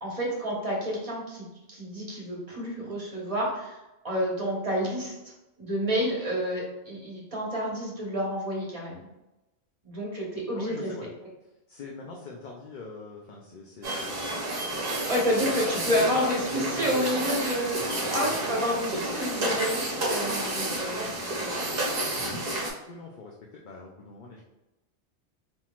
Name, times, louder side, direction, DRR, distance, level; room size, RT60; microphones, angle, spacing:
voice 1, 0.0-3.8 4.0-5.1 5.6-9.0 9.8-10.9 15.1-21.1 21.3-21.5, equal, 30° right, -3 dB, 1.2 m, -29 dB
voice 2, 10.5-11.1 11.7-14.3 15.4-17.3 18.0-18.5 22.9-24.4, left 3 dB, 55° left, -1 dB, 0.6 m, -41 dB
sound 1, 13.8-22.7, right 1 dB, 55° right, 1.2 m, -30 dB
4.3 x 3.8 x 2.4 m, 0.99 s
omnidirectional pair, 1.1 m